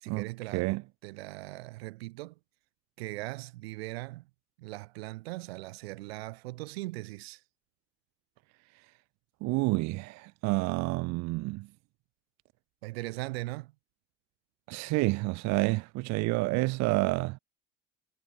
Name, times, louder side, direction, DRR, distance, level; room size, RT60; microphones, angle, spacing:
voice 1, 0.0-2.4 3.0-4.3 4.6-7.4 12.8-13.7, right 21 dB, 85° right, 0.8 m, -40 dB
voice 2, 9.4-11.7 14.7-17.4, right 23 dB, 65° right, 0.5 m, -29 dB
hypercardioid pair, 70°, 30 cm